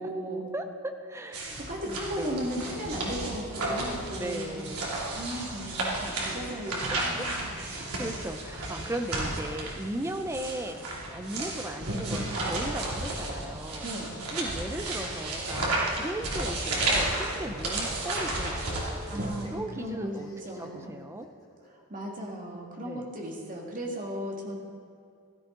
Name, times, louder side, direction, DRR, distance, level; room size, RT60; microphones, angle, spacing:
voice 1, 0.0-0.4 1.7-4.6 5.1-7.5 13.8-14.1 19.1-20.9 21.9-24.5, equal, 40° right, -1 dB, 2.1 m, -36 dB
voice 2, 0.5-1.6 1.9-2.4 4.2-5.0 7.2-10.8 11.1-13.9 14.3-20.3 20.6-21.3 22.8-23.1, right 1 dB, 10° right, 7 dB, 0.7 m, -37 dB
sound 1, 1.3-19.5, right 2 dB, 85° right, 2.9 m, -33 dB
sound 2, 17.0-21.7, equal, 20° left, 1.9 m, -48 dB
15.5 x 13.0 x 3.9 m, 2.4 s
head